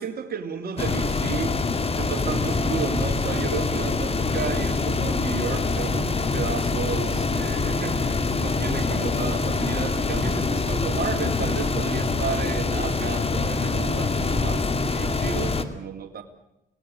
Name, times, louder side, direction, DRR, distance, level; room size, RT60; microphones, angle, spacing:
voice 1, 0.0-1.6 1.9-16.2, right 6 dB, 50° right, 4 dB, 3.0 m, -32 dB
sound 1, 0.8-15.6, left 3 dB, 30° left, 2.2 m, -25 dB
26.5 x 18.0 x 8.8 m, 0.88 s
cardioid pair, 90°, 20 cm